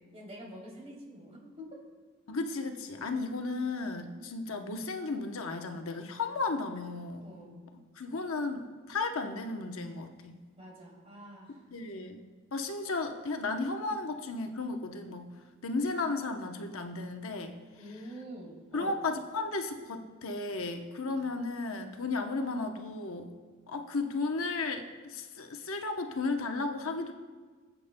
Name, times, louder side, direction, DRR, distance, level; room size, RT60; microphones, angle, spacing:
voice 1, 0.1-1.7 7.2-7.6 10.6-11.7 14.0-14.1 17.7-19.0, equal, 30° right, -3 dB, 3.0 m, -47 dB
voice 2, 2.3-7.2 8.0-10.4 11.7-12.2 12.5-15.3 15.6-17.6 18.7-23.3 23.7-27.1, left 3 dB, 70° left, 5 dB, 0.8 m, -34 dB
20.0 x 8.2 x 2.2 m, 1.5 s
head